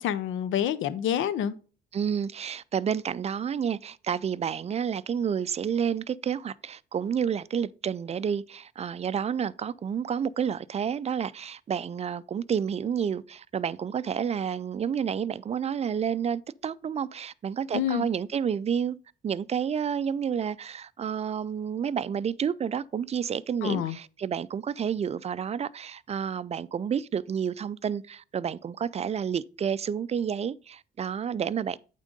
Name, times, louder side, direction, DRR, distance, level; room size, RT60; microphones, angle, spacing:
voice 1, 0.0-1.5 17.7-18.1 23.6-24.0, left 10 dB, 80° left, 0.6 m, -27 dB
voice 2, 1.9-19.0 19.2-31.8, right 7 dB, 35° right, 0.4 m, -30 dB
8.6 x 3.7 x 5.2 m
cardioid pair, 90°, 20 cm